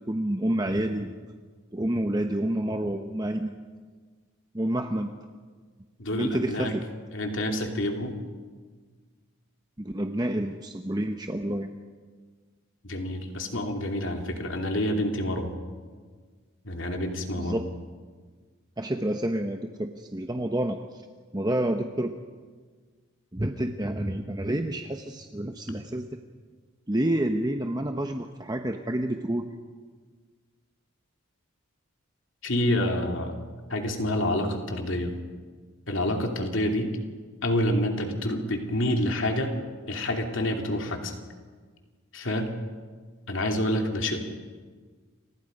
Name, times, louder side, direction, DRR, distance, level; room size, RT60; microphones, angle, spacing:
voice 1, 0.1-1.1 1.7-3.5 4.5-5.1 6.1-6.8 9.8-11.7 17.4-17.6 18.8-21.0 21.3-22.1 23.3-26.1 26.9-29.5, right 1 dB, 20° right, 5 dB, 0.9 m, -28 dB
voice 2, 6.0-6.7 7.1-8.2 12.8-15.5 16.6-17.6 32.4-33.3 33.7-35.2 35.9-36.9 37.4-39.5 39.9-41.1 42.1-42.5 43.3-44.2, left 1 dB, 65° left, 3 dB, 2.9 m, -28 dB
30.0 x 25.5 x 5.3 m, 1.5 s
head